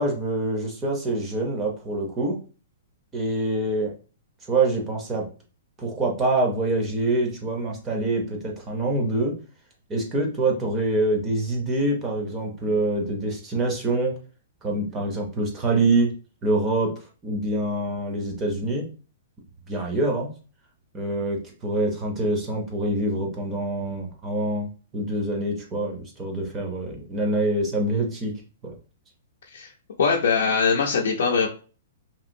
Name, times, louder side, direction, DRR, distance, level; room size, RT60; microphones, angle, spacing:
voice 1, 0.0-2.4 3.1-3.9 4.5-5.3 5.8-9.3 9.9-14.1 14.6-16.1 16.4-18.9 19.7-20.3 20.9-28.3 28.6-28.7, right 2 dB, 15° right, 0 dB, 0.6 m, -25 dB
voice 2, 30.0-31.5, left 5 dB, 70° left, 0 dB, 0.5 m, -21 dB
2.9 x 2.7 x 2.6 m, 0.36 s
hypercardioid pair, 170°, 0 cm